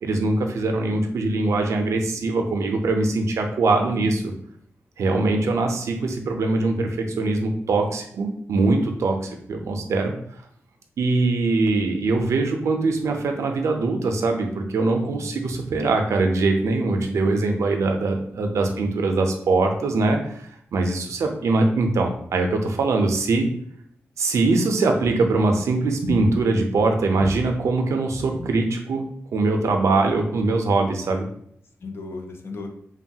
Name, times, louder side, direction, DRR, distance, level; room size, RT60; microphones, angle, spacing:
voice 1, 0.0-4.2 5.0-9.2 9.5-10.1 11.0-20.4 20.7-23.5 24.2-31.3, right 3 dB, 85° right, 4 dB, 0.5 m, -22 dB
voice 2, 3.7-4.2 9.2-9.4 15.1-15.4 18.4-18.9 31.8-32.7, left 3 dB, 55° left, 3 dB, 0.5 m, -37 dB
3.1 x 2.2 x 2.7 m, 0.67 s
wide cardioid pair, 120°, 5 cm